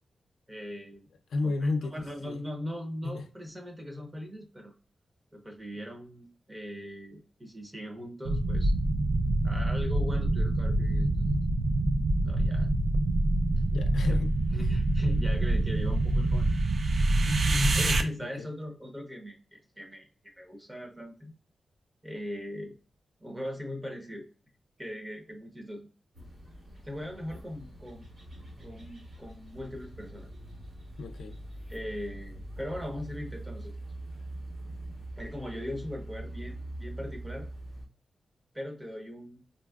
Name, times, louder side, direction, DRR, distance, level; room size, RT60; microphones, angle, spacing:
voice 1, 0.5-1.1 1.4-1.5 1.9-4.7 5.3-8.7 9.4-11.4 12.2-12.7 14.1-14.2 14.5-16.5 17.7-21.3 22.0-22.8 23.2-24.3 24.8-25.9 26.8-28.1 28.6-30.3 31.7-33.7 35.2-37.5 38.5-39.4, left 1 dB, 15° right, 0.8 m, -40 dB
voice 2, 1.3-2.4 3.0-3.3 13.7-14.3 14.6-14.7 17.3-17.9 18.2-18.5 31.0-31.4, left 3 dB, 90° left, 0.4 m, -32 dB
sound 1, 8.3-18.0, right 2 dB, 50° right, 0.3 m, -26 dB
sound 2, 26.1-37.8, right 1 dB, 80° right, 1.5 m, -43 dB
3.8 x 2.0 x 2.3 m
wide cardioid pair, 120°, 0 cm